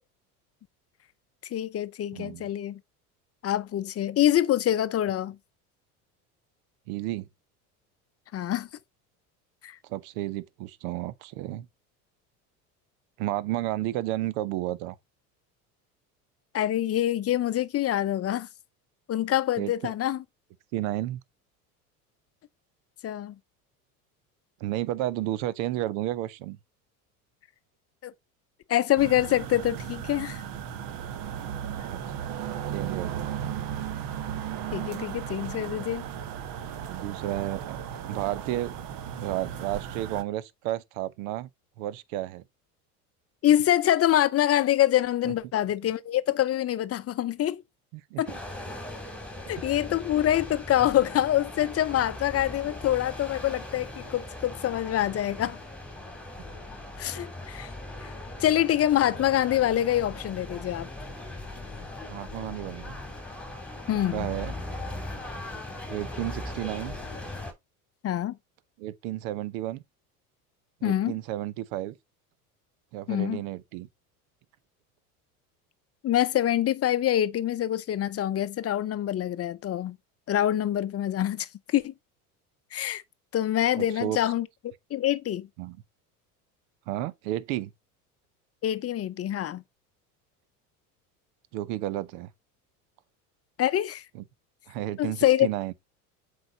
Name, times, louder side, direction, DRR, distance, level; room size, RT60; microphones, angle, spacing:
voice 1, 1.5-2.8 3.4-5.4 8.3-8.7 9.6-9.8 16.5-18.5 19.1-20.2 23.0-23.3 28.0-28.1 28.7-30.4 34.7-36.0 43.4-47.6 48.2-48.3 49.5-55.6 57.0-57.7 58.4-60.9 63.9-64.3 68.0-68.4 70.8-71.2 73.1-73.4 76.0-80.0 80.3-81.9 82.7-83.0 83.3-84.5 84.9-85.5 88.6-89.6 93.6-94.0 95.0-95.5, left 12 dB, 30° left, 0.7 m, -25 dB
voice 2, 2.1-2.5 6.9-7.3 9.9-11.7 13.2-14.9 19.6-19.9 20.7-21.2 24.6-26.6 31.3-31.5 31.8-32.2 32.7-33.6 36.9-38.8 39.2-41.5 41.8-42.4 45.2-45.3 47.9-48.4 62.1-63.0 63.9-64.5 65.9-67.0 68.8-69.8 70.8-72.0 72.9-73.9 83.8-84.2 85.6-85.8 86.9-87.7 91.5-92.3 94.1-94.2 94.7-95.7, right 14 dB, 65° right, 0.9 m, -32 dB
sound 1, 29.0-40.2, right 9 dB, 50° right, 1.3 m, -35 dB
sound 2, 48.3-67.5, left 2 dB, 5° left, 3.0 m, -39 dB
7.9 x 4.9 x 4.0 m
hypercardioid pair, 80°, 44 cm